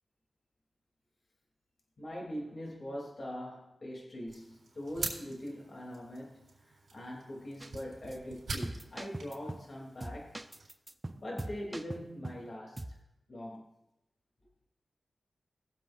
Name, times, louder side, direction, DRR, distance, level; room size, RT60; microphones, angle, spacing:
voice 1, 2.0-10.4 11.1-13.0 13.3-13.7, equal, 50° left, -1 dB, 2.9 m, -42 dB
sound 1, 4.3-10.7, right 3 dB, 80° right, 3.6 m, -45 dB
sound 2, 7.6-7.8 8.1-8.2 8.6-9.7 10.0-12.5 12.8-13.0, right 1 dB, 20° right, 0.7 m, -42 dB
20.5 x 7.5 x 2.6 m, 0.87 s
wide cardioid pair, 70°, 0 cm